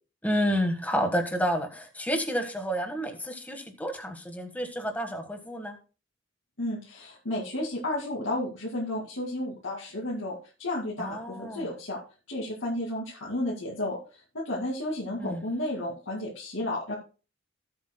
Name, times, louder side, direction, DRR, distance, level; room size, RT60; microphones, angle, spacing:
voice 1, 0.2-5.8 11.0-11.7 15.2-15.4, equal, 10° left, 5 dB, 1.5 m, -30 dB
voice 2, 6.6-12.0 12.3-16.9, left 1 dB, 85° left, -4 dB, 2.3 m, -32 dB
17.5 x 7.9 x 2.2 m, 0.35 s
head